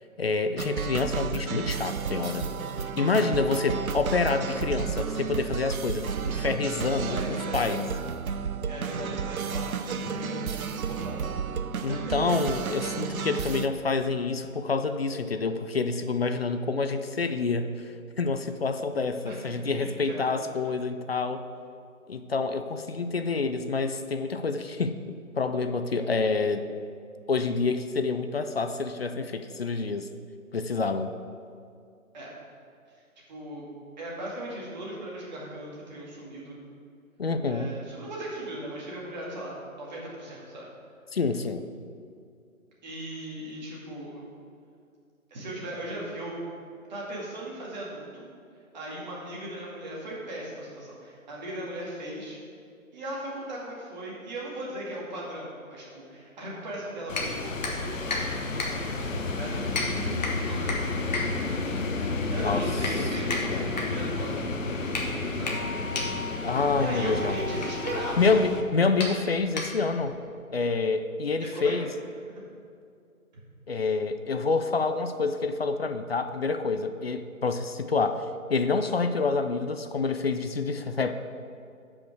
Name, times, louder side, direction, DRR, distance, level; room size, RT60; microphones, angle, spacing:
voice 1, 0.2-2.5 3.0-7.9 11.8-21.4 22.1-26.6 27.3-30.1 30.5-31.1 37.2-37.7 41.1-41.6 62.4-62.7 63.5-63.7 66.4-67.4 68.2-70.1 70.5-71.9 73.7-81.1, left 4 dB, 50° left, 8 dB, 0.5 m, -27 dB
sound 1, 0.6-13.7, right 6 dB, 80° right, 0.7 m, -32 dB
voice 2, 6.8-7.7 8.7-11.3 11.9-12.5 13.0-13.1 19.3-20.3 32.1-32.3 33.3-33.6 34.0-36.6 37.4-40.7 42.8-44.3 45.3-46.4 46.9-48.3 48.7-52.4 52.9-57.9 59.4-61.7 62.1-65.0 65.3-65.5 66.8-68.4 71.4-71.8 72.3-72.4, right 1 dB, 30° right, -5 dB, 2.2 m, -38 dB
sound 2, 57.1-68.6, left 3 dB, 65° left, 1.0 m, -31 dB
sound 3, 57.1-70.1, left 3 dB, 30° left, 1.0 m, -36 dB
11.5 x 5.4 x 4.7 m, 2.4 s
figure-of-eight pair, 155°, 42 cm